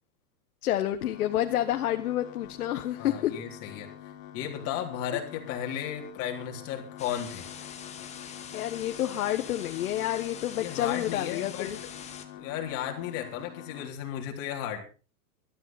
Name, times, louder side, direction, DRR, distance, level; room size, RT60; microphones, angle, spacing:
voice 1, 0.6-3.3 8.5-11.8, left 12 dB, 75° left, 6 dB, 1.5 m, -29 dB
sound 1, 1.0-13.9, left 11 dB, 60° left, 3.5 m, -46 dB
voice 2, 3.0-3.9 4.3-7.5 10.6-11.7 12.4-14.8, left 10 dB, 35° left, 2 dB, 3.8 m, -34 dB
sound 2, 7.0-12.2, left 8 dB, 15° left, 1.5 m, -44 dB
20.0 x 13.0 x 4.3 m, 0.37 s
supercardioid pair, 160°, 44 cm